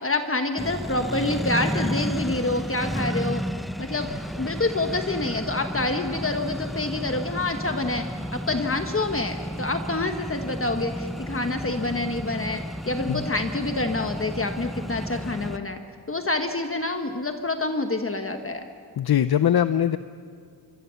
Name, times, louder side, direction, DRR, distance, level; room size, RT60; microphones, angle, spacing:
voice 1, 0.0-3.4 3.8-4.1 4.4-8.0 8.3-15.8 16.1-18.6, left 2 dB, 35° left, 5 dB, 1.3 m, -27 dB
Accelerating revving vroom, 0.6-15.6, equal, ahead, 0.6 m, -32 dB
voice 2, 19.0-20.0, left 10 dB, 80° left, 13 dB, 0.6 m, -21 dB
27.0 x 23.5 x 7.0 m, 2.2 s
wide cardioid pair, 120°, 38 cm